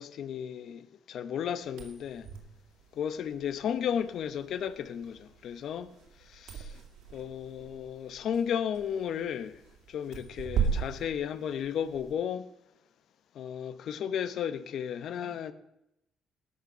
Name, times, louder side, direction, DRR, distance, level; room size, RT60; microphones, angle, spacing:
voice 1, 0.0-2.3 2.9-5.9 6.3-6.7 7.1-9.6 9.9-12.5 13.3-15.5, left 8 dB, 65° left, 0.9 m, -34 dB
sound 1, 1.6-12.1, right 6 dB, 85° right, 2.6 m, -38 dB
19.0 x 6.6 x 6.6 m
cardioid pair, 120°, 0 cm